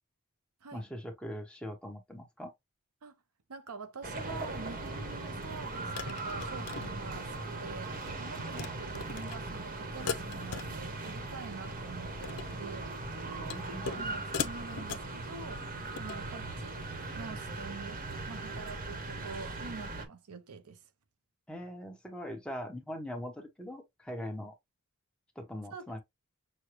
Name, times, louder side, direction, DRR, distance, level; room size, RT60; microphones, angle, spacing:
voice 1, 0.7-2.5 13.4-14.0 21.5-24.5 25.3-26.0, equal, 5° left, 1.1 m, -41 dB
voice 2, 3.5-15.7 16.0-16.9 17.2-20.9 25.7-26.0, right 4 dB, 75° right, 0.7 m, -46 dB
sound 1, 4.0-20.1, right 2 dB, 40° right, 1.1 m, -39 dB
sound 2, 5.1-5.2 5.9-7.5 7.8-8.1 8.4-8.7 8.9-9.4 10.1-11.1 11.4-11.7 12.1-12.5 13.5-14.0 14.3-15.1 15.8-16.2, left 6 dB, 90° left, 0.6 m, -39 dB
6.4 x 2.2 x 3.0 m
head